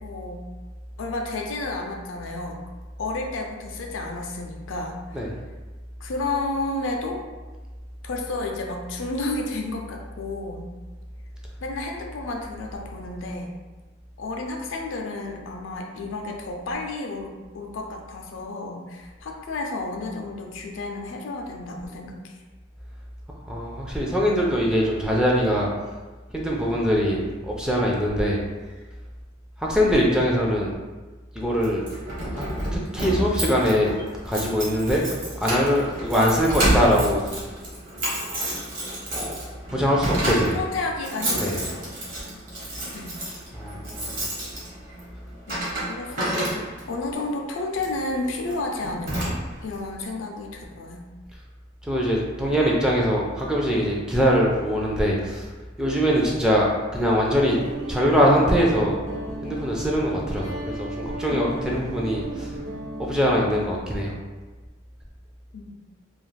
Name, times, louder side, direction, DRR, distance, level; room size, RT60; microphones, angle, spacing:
voice 1, 0.0-0.5 1.0-2.6 3.0-5.2 6.0-7.2 8.0-10.7 11.6-13.5 14.2-22.4 40.2-41.9 42.9-43.2 45.5-46.3 46.6-51.1 61.3-61.5 65.5-65.7, left 2 dB, 75° left, 1 dB, 0.4 m, -31 dB
voice 2, 23.5-25.7 26.3-28.4 29.6-30.7 31.3-31.9 32.3-32.4 32.7-33.9 34.2-35.0 35.4-37.2 39.1-39.4 39.7-40.6 41.4-41.6 43.5-44.1 51.9-55.5 55.8-57.6 57.9-59.0 59.4-62.5 63.0-64.1, equal, 5° right, -3 dB, 0.4 m, -22 dB
Keys jangling, 31.6-47.0 47.7-48.0 48.5-48.6 48.8-49.7, right 1 dB, 45° right, 1.0 m, -29 dB
Guitar, 57.5-63.1, right 1 dB, 75° right, 1.0 m, -35 dB
2.4 x 2.4 x 3.1 m, 1.3 s
head